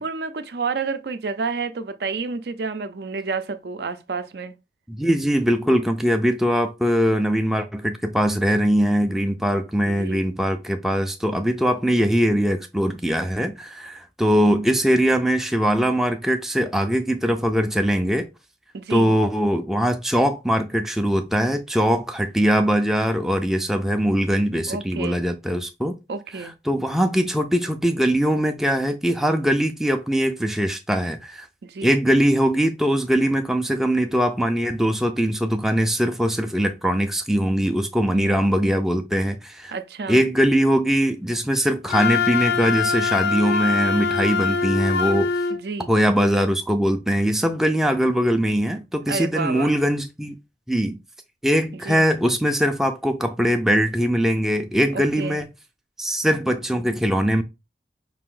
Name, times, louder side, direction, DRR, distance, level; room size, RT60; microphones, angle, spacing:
voice 1, 0.0-4.5 9.8-10.3 18.7-19.1 24.7-25.2 26.1-26.5 31.6-31.9 38.1-38.6 39.7-40.2 45.5-45.9 49.1-49.7 51.8-52.0 54.9-55.4, right 4 dB, 65° right, 0.5 m, -30 dB
voice 2, 4.9-18.3 18.9-26.0 26.4-31.5 31.8-39.7 40.1-45.3 45.9-50.4 50.7-51.0 51.4-55.5 56.0-57.4, equal, ahead, 0.3 m, -21 dB
Wind instrument woodwind instrument, 41.9-45.6, left 5 dB, 60° left, 0.5 m, -23 dB
4.9 x 2.5 x 3.7 m
head